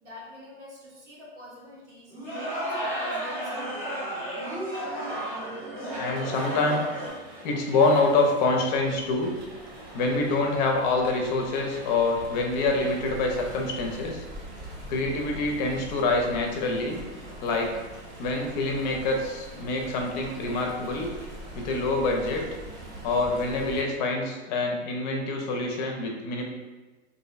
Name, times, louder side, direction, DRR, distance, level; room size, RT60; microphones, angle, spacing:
voice 1, 0.0-4.3, left 1 dB, 90° right, -5 dB, 1.1 m, -47 dB
sound 1, 2.1-7.1, right 1 dB, 5° left, 0.8 m, -32 dB
sound 2, 5.9-13.5, right 1 dB, 65° right, 0.8 m, -47 dB
voice 2, 6.0-6.8 7.4-9.3 9.9-14.2 14.9-17.0 17.4-17.8 18.2-21.1 21.5-22.4 23.0-26.4, left 3 dB, 40° left, 2 dB, 0.4 m, -26 dB
Stream, 8.7-23.8, right 1 dB, 25° right, 0.4 m, -43 dB
2.4 x 2.1 x 2.4 m, 1.2 s
hypercardioid pair, 135°, 34 cm